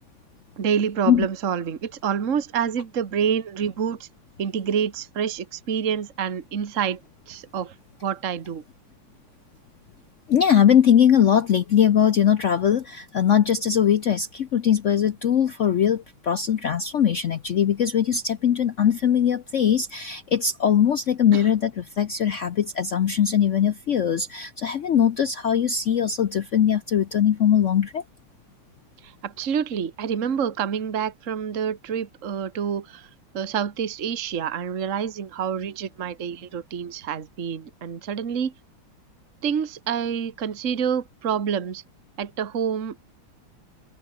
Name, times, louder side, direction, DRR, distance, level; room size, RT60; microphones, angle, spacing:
voice 1, 0.6-4.1 4.4-7.0 7.3-7.7 8.0-8.6 21.3-21.4 29.0-33.1 33.3-38.5 39.4-41.8 42.2-43.0, right 7 dB, 40° right, 1.7 m, -27 dB
voice 2, 10.3-28.0, left 9 dB, 75° left, 0.6 m, -21 dB
omnidirectional pair, 2.3 m